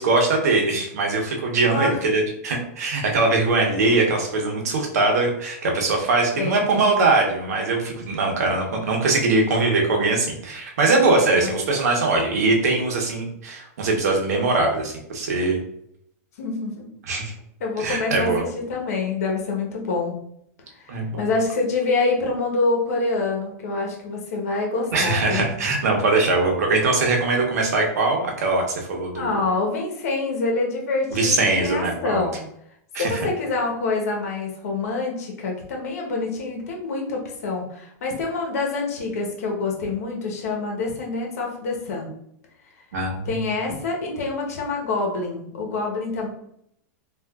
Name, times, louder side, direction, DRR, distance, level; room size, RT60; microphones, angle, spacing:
voice 1, 0.0-15.6 17.1-17.3 17.8-18.4 20.9-21.2 24.9-29.4 31.1-32.3 32.9-33.2 42.9-43.3, right 3 dB, 85° right, 1 dB, 0.9 m, -21 dB
voice 2, 1.7-2.0 6.4-6.6 11.3-11.5 16.4-16.9 17.6-20.2 20.7-25.5 29.1-32.4 33.0-42.1 43.2-46.3, left 3 dB, 75° left, 0 dB, 1.0 m, -26 dB
3.5 x 2.5 x 2.3 m, 0.72 s
supercardioid pair, 155°, 8 cm